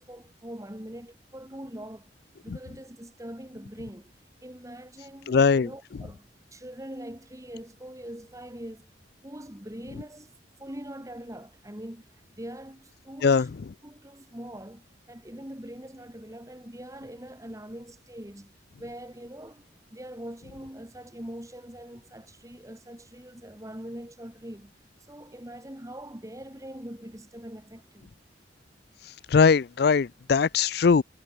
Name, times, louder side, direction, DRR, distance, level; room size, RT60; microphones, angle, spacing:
voice 1, 0.0-2.1 2.4-4.1 4.4-8.9 9.2-10.3 10.6-13.5 13.8-18.5 18.8-24.7 25.1-28.1, right 1 dB, 15° right, 2.6 m, -42 dB
voice 2, 5.3-5.7 13.2-13.5 29.3-31.0, left 5 dB, 60° left, 0.4 m, -20 dB
head